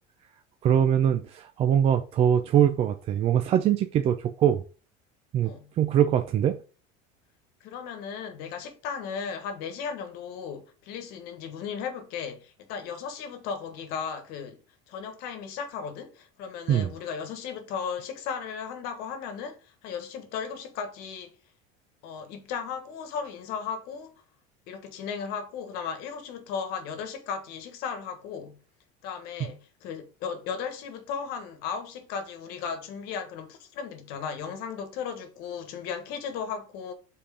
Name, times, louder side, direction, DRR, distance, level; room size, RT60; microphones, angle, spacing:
voice 1, 0.6-4.6 5.3-6.5 16.7-16.9, right 9 dB, 35° right, 0.5 m, -23 dB
voice 2, 5.4-5.7 7.6-14.6 14.9-21.3 22.0-24.2 24.7-28.6 29.0-36.9, left 6 dB, 60° left, 1.3 m, -36 dB
5.6 x 4.3 x 4.9 m
cardioid pair, 145°, 18 cm